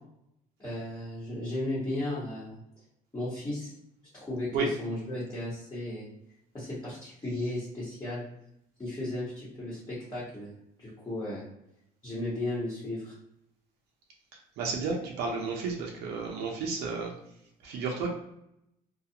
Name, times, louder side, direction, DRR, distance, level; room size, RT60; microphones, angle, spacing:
voice 1, 0.6-2.6 3.1-3.7 4.1-6.1 6.5-8.2 8.8-10.5 10.8-11.4 12.0-13.1, left 1 dB, 20° left, -8 dB, 1.3 m, -35 dB
voice 2, 14.6-17.1 17.6-18.1, right 4 dB, 85° right, 0 dB, 0.6 m, -32 dB
2.4 x 2.4 x 2.8 m, 0.80 s
cardioid pair, 110°, 17 cm